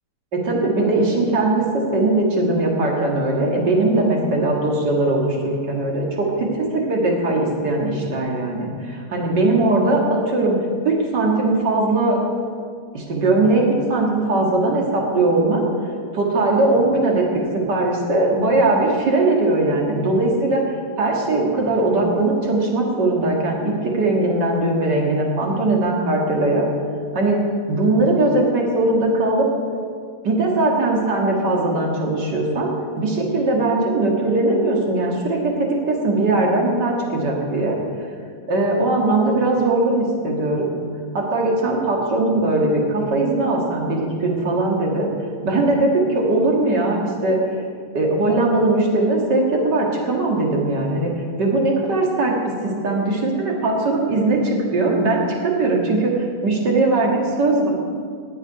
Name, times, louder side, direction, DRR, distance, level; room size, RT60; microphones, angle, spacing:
voice 1, 0.3-10.6 10.8-12.2 12.9-15.6 16.1-17.2 17.7-26.7 27.1-27.4 27.7-29.4 30.2-32.7 33.0-35.4 35.9-37.8 38.5-40.7 41.1-45.1 45.4-47.4 47.9-51.1 51.4-52.3 52.8-57.7, right 2 dB, 85° right, -1 dB, 2.6 m, -20 dB
19.5 x 7.2 x 5.7 m, 2.1 s
omnidirectional pair, 1.8 m